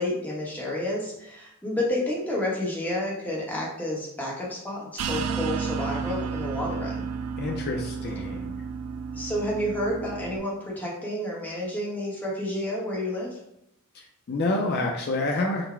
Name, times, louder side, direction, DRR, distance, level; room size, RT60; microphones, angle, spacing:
voice 1, 0.0-7.1 9.1-13.4, left 1 dB, 5° left, -4 dB, 0.9 m, -30 dB
sound 1, 5.0-10.4, right 6 dB, 80° right, 0.3 m, -32 dB
voice 2, 7.4-8.6 13.9-15.7, left 2 dB, 45° left, 1 dB, 0.4 m, -28 dB
3.9 x 2.1 x 4.3 m, 0.78 s
head